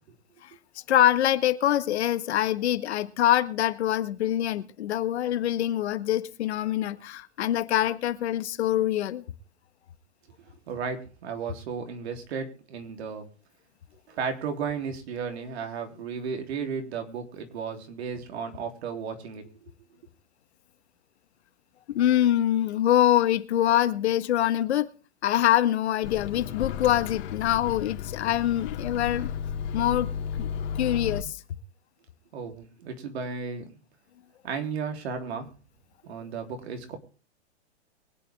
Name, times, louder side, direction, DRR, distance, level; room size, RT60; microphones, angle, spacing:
voice 1, 0.9-9.2 21.9-24.9 25.2-29.3 29.7-30.1 30.4-30.5 30.8-31.4, left 12 dB, 70° left, 1.7 m, -24 dB
voice 2, 10.7-13.2 14.1-19.5 32.3-33.7 34.4-35.5 36.0-37.0, right 6 dB, 70° right, 3.5 m, -34 dB
Microwave oven, 26.0-31.2, left 8 dB, 50° left, 3.2 m, -33 dB
23.5 x 8.5 x 3.6 m
hypercardioid pair, 140°, 34 cm